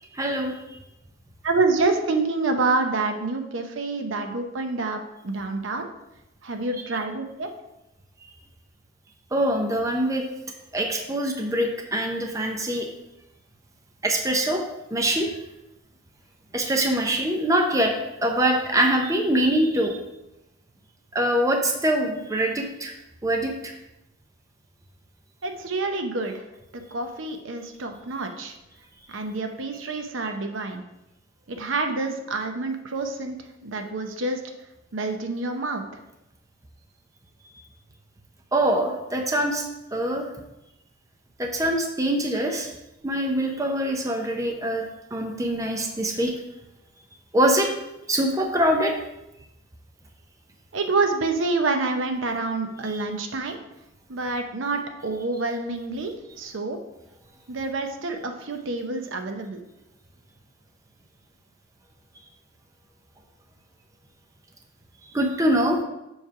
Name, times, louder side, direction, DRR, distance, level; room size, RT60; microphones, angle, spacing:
voice 1, 0.1-0.5 9.3-10.2 10.7-12.9 14.0-14.6 14.9-15.3 16.5-17.9 18.2-20.0 21.1-22.9 23.2-23.7 38.5-39.6 39.9-40.2 41.4-42.7 43.0-44.8 45.1-46.3 47.3-47.7 48.1-48.9 52.9-53.0 65.1-65.8, right 1 dB, 15° right, 2 dB, 0.7 m, -23 dB
voice 2, 1.4-5.9 6.4-7.5 25.4-26.4 26.9-28.6 29.1-30.8 31.5-33.4 33.6-34.4 34.9-35.8 50.7-53.6 54.1-56.8 57.5-59.6, right 3 dB, 70° right, 5 dB, 0.7 m, -27 dB
7.2 x 3.3 x 5.7 m, 0.93 s
head